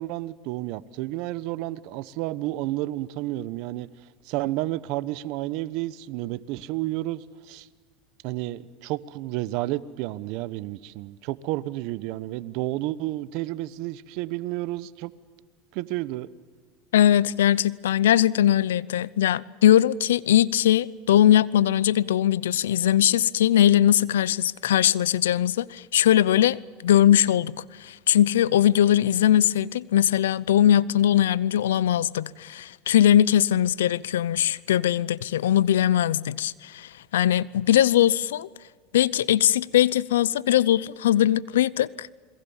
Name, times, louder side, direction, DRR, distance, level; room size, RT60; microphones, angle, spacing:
voice 1, 0.0-3.9 4.2-7.7 8.2-15.1 15.7-16.3, right 16 dB, 65° right, 1.1 m, -31 dB
voice 2, 16.9-38.5 38.9-42.1, left 11 dB, 90° left, 0.6 m, -21 dB
28.5 x 22.0 x 7.3 m
hypercardioid pair, 95°, 0 cm